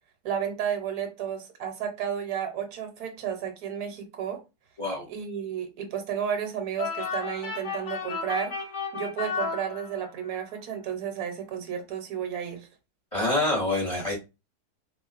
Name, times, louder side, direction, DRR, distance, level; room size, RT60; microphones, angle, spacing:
voice 1, 0.2-4.4 5.1-8.6 8.9-12.7, right 8 dB, 70° right, 1.3 m, -32 dB
voice 2, 4.8-5.1 13.1-14.1, left 2 dB, 25° left, 0.7 m, -26 dB
sound 1, 6.8-10.3, left 5 dB, 60° left, 1.2 m, -33 dB
3.4 x 3.0 x 2.4 m
omnidirectional pair, 1.7 m